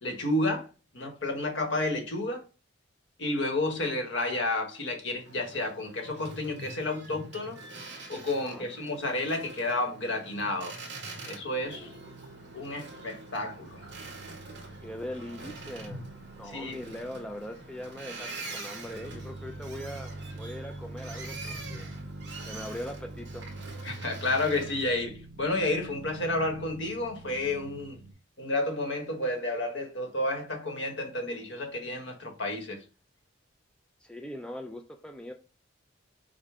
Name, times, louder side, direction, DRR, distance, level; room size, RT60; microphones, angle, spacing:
voice 1, 0.0-0.7 0.9-2.4 3.2-7.6 8.1-10.7 11.3-11.9 12.5-13.8 16.5-16.8 23.8-28.0 28.4-32.8, left 2 dB, 65° left, 1.2 m, -31 dB
Boat Water vehicle, 5.2-25.0, right 2 dB, 60° right, 1.2 m, -45 dB
voice 2, 8.4-8.7 11.6-12.2 14.8-16.0 16.4-21.9 22.5-23.5 34.0-35.3, left 1 dB, 5° left, 0.3 m, -41 dB
sound 1, 11.4-28.1, right 2 dB, 80° right, 0.7 m, -45 dB
5.0 x 2.1 x 4.8 m
head